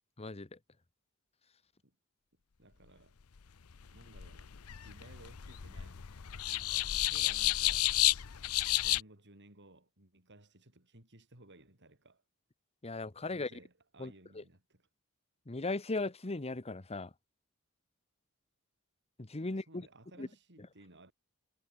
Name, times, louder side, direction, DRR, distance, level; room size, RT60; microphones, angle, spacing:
voice 1, 0.2-0.6 12.8-13.5 14.0-14.4 15.5-17.1 19.2-19.9 20.2-20.3, left 2 dB, 30° left, 1.1 m, -37 dB
voice 2, 2.6-3.2 3.9-4.5 4.8-6.0 6.5-7.9 8.8-12.2 13.3-14.9 19.5-21.1, right 2 dB, 55° right, 7.1 m, -58 dB
sound 1, 3.7-9.0, left 16 dB, 80° left, 0.7 m, -32 dB
head